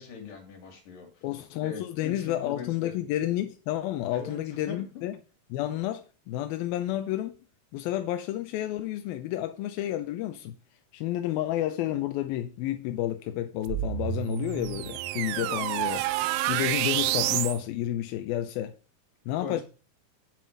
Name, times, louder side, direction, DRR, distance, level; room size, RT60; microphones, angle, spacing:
voice 1, 0.0-1.2 1.6-2.9 4.1-4.4 4.7-4.8 15.4-15.6 19.4-19.6, left 5 dB, 55° left, 4.7 m, -40 dB
voice 2, 1.2-5.2 5.5-7.4 7.7-10.6 10.9-16.1 16.5-18.8 19.3-19.6, left 13 dB, 75° left, 2.4 m, -30 dB
sound 1, 13.7-17.6, right 15 dB, 85° right, 2.0 m, -29 dB
8.0 x 7.7 x 8.4 m
omnidirectional pair, 4.8 m